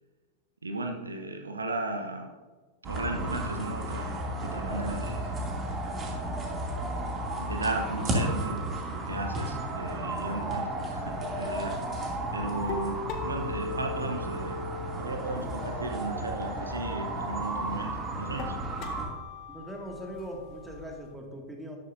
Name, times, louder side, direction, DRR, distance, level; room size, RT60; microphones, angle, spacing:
voice 1, 0.6-2.3 2.8-5.4 7.4-11.8 12.3-14.7 14.9-18.6, right 2 dB, 75° right, 5 dB, 1.0 m, -35 dB
sound 1, 2.8-19.1, right 1 dB, 25° right, 2.7 m, -33 dB
sound 2, 11.1-21.1, left 3 dB, 35° left, 1.4 m, -41 dB
voice 2, 19.5-21.8, equal, 10° right, 1 dB, 2.2 m, -40 dB
13.0 x 11.5 x 2.7 m, 1.3 s
figure-of-eight pair, 90°, 0 cm